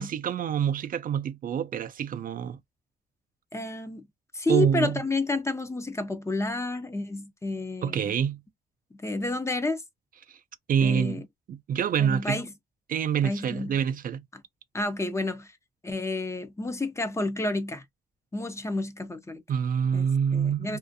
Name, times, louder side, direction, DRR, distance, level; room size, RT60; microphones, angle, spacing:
voice 1, 0.0-2.6 4.5-5.0 7.8-8.4 10.3-10.4 10.7-11.2 11.5-12.4 12.9-14.2 19.5-20.8, right 8 dB, 50° right, 0.4 m, -26 dB
voice 2, 3.5-4.1 4.3-8.1 8.9-9.8 10.8-11.3 12.0-12.5 13.2-13.8 14.3-14.4 14.7-15.5 15.8-17.8 18.3-19.4 19.9-20.8, left 2 dB, 15° left, 0.5 m, -30 dB
2.5 x 2.4 x 2.5 m
cardioid pair, 115°, 18 cm